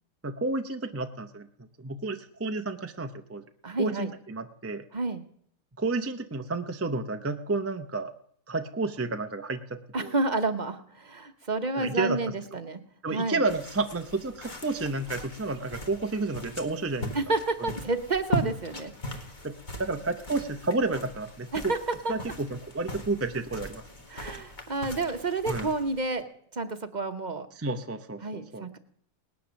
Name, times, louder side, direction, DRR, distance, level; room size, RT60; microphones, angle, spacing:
voice 1, 0.2-1.5 1.8-3.4 3.8-4.8 5.8-8.1 8.5-10.1 11.8-12.2 13.0-17.1 17.6-17.7 19.4-19.5 19.8-21.7 22.1-23.8 25.5-25.7 27.6-28.7, right 3 dB, 20° right, 8 dB, 0.4 m, -31 dB
voice 2, 3.6-4.1 4.9-5.2 9.9-12.8 13.1-13.4 17.1-19.3 21.5-21.8 22.0-22.1 24.1-26.2 26.5-27.5 28.2-28.8, right 3 dB, 35° right, 9 dB, 0.9 m, -30 dB
sound 1, 13.5-26.2, left 1 dB, 30° left, 1.8 m, -39 dB
19.0 x 10.0 x 6.3 m, 0.65 s
omnidirectional pair, 1.6 m